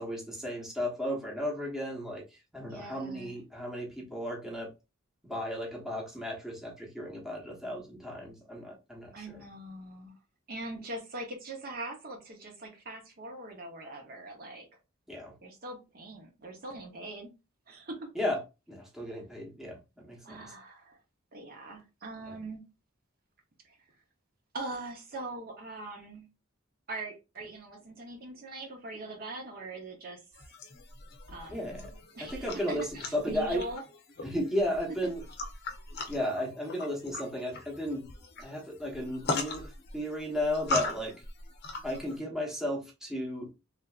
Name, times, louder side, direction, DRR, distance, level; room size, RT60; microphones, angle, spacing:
voice 1, 0.0-2.2 2.5-4.7 5.2-9.3 15.1-15.3 18.1-18.4 18.7-20.5 22.3-22.4 31.5-31.8 32.2-33.6 34.2-35.2 36.1-38.0 38.4-41.1 41.8-43.5, left 1 dB, ahead, 0.9 m, -34 dB
voice 2, 2.6-3.4 9.1-10.1 10.5-14.7 15.4-17.3 17.7-18.1 20.2-21.0 21.3-22.6 23.6-23.8 24.5-26.3 26.9-30.2 31.3-31.8 32.1-33.8, right 2 dB, 45° right, 0.7 m, -42 dB
sound 1, 30.3-42.2, left 2 dB, 50° left, 0.6 m, -39 dB
3.2 x 2.6 x 2.3 m
head